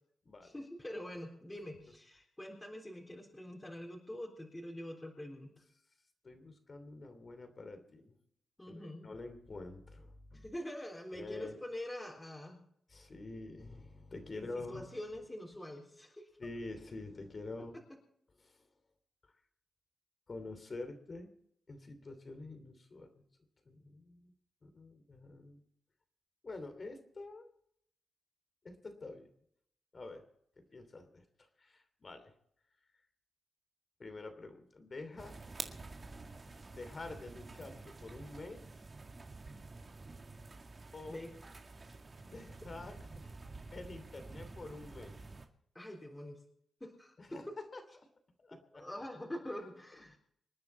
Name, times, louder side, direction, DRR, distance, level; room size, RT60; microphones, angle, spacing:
voice 1, 0.4-5.6 8.6-9.1 10.3-12.6 14.3-16.3 41.1-41.3 45.7-46.4 46.8-47.6 48.5-50.2, left 1 dB, 15° left, -2 dB, 3.9 m, -45 dB
voice 2, 6.2-8.2 8.7-10.4 11.1-11.6 12.9-14.9 16.4-17.7 18.4-18.7 20.3-21.3 21.7-23.1 23.6-24.3 24.6-25.6 26.4-27.5 28.6-29.3 29.9-30.2 30.6-31.2 31.6-32.3 34.0-35.4 36.7-38.6 40.9-41.2 42.3-43.3 43.7-45.1 47.2-47.5 47.7-47.8 48.4-48.8 50.0-50.1, left 2 dB, 45° left, 8 dB, 2.9 m, -47 dB
sound 1, 35.2-45.5, right 3 dB, 40° right, 2.0 m, -49 dB
27.0 x 9.7 x 4.3 m, 0.69 s
cardioid pair, 70°, 0 cm